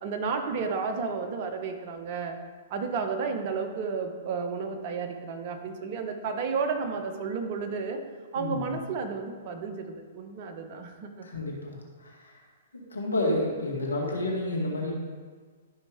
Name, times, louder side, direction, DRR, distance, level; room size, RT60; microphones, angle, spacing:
voice 1, 0.0-2.4 2.7-8.0 8.3-11.3, right 5 dB, 45° right, 5 dB, 1.2 m, -32 dB
voice 2, 8.4-8.8 11.2-12.4 12.7-15.0, left 1 dB, 90° left, -2 dB, 2.2 m, -30 dB
12.5 x 5.5 x 3.7 m, 1.6 s
hypercardioid pair, 120°, 0 cm